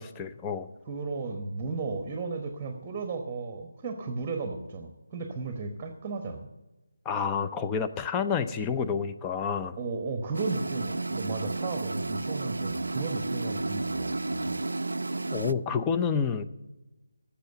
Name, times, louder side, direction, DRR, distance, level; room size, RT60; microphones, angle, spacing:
voice 1, 0.0-0.7 7.1-9.8 15.3-16.4, left 6 dB, 10° left, 8 dB, 0.5 m, -29 dB
voice 2, 0.9-6.5 9.8-14.6, right 3 dB, 20° right, 5 dB, 1.1 m, -35 dB
sound 1, 10.3-15.5, right 2 dB, 70° right, 0.4 m, -32 dB
13.5 x 7.3 x 7.8 m, 1.0 s
figure-of-eight pair, 155°, 0 cm